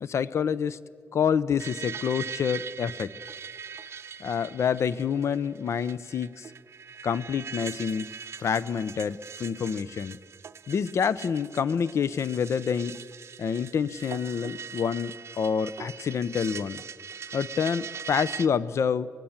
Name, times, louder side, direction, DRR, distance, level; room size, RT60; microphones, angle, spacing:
voice 1, 0.0-0.8 1.1-3.1 4.2-6.5 7.0-8.1 8.4-10.2 10.7-13.0 13.4-16.8 17.3-19.1, left 7 dB, 70° left, 18 dB, 0.6 m, -27 dB
sound 1, 1.6-18.5, right 7 dB, 60° right, 0.7 m, -41 dB
24.0 x 20.0 x 7.2 m, 2.1 s
cardioid pair, 80°, 5 cm